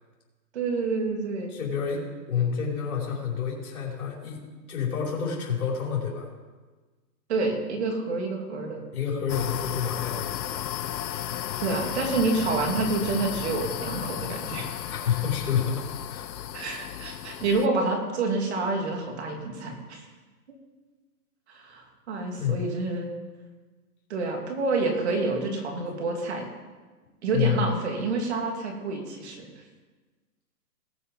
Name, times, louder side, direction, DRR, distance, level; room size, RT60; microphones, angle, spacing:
voice 1, 0.5-1.5 7.3-8.8 11.6-14.8 16.5-20.1 21.5-23.1 24.1-26.5 27.2-29.5, right 3 dB, 40° right, 2 dB, 2.7 m, -28 dB
voice 2, 1.5-4.4 4.7-6.3 8.9-10.6 14.9-16.3 22.4-22.6 25.8-25.9 27.3-27.7, left 7 dB, 60° left, -2 dB, 5.0 m, -29 dB
sound 1, 9.3-17.7, left 11 dB, 90° left, 0.7 m, -34 dB
19.5 x 6.8 x 5.4 m, 1.3 s
hypercardioid pair, 165°, 49 cm